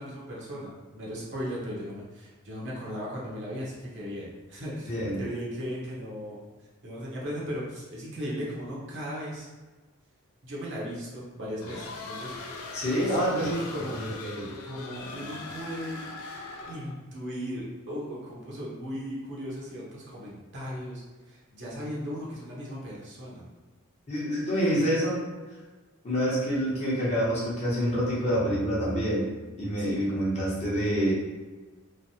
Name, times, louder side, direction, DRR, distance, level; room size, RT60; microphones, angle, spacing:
voice 1, 0.0-6.5 6.8-9.5 10.4-12.3 13.0-14.0 14.6-16.0 16.7-23.5 29.8-30.1, equal, 55° right, -5 dB, 0.9 m, -37 dB
voice 2, 4.9-5.2 12.7-13.5 13.9-14.5 24.1-25.2 26.0-29.3 29.6-31.1, equal, 30° left, -7 dB, 0.9 m, -27 dB
sound 1, 11.6-17.0, left 3 dB, 75° left, 0.4 m, -40 dB
3.1 x 2.2 x 2.7 m, 1.3 s
head